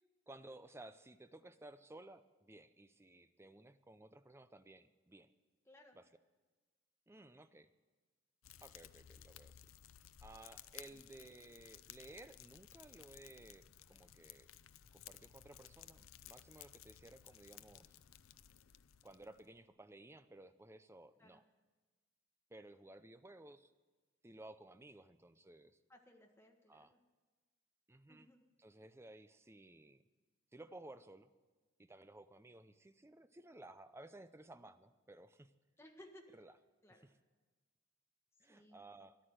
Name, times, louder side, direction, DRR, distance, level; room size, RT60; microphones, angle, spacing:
voice 1, 0.3-5.3 5.9-6.1 7.1-7.7 8.6-9.6 10.2-14.5 14.9-18.0 19.0-21.4 22.5-23.7 24.2-25.8 26.7-26.9 27.9-28.3 28.6-30.0 30.5-31.3 31.8-35.5 36.3-36.6 36.9-37.1 38.4-39.2, right 2 dB, 15° right, 11 dB, 0.5 m, -57 dB
Fire, 8.4-19.6, left 11 dB, 90° left, 0.5 m, -58 dB
voice 2, 25.9-27.0 28.1-28.4 35.8-36.3 36.8-37.1 38.5-38.8, left 1 dB, 15° left, 3 dB, 1.5 m, -61 dB
14.0 x 11.0 x 7.9 m, 1.3 s
head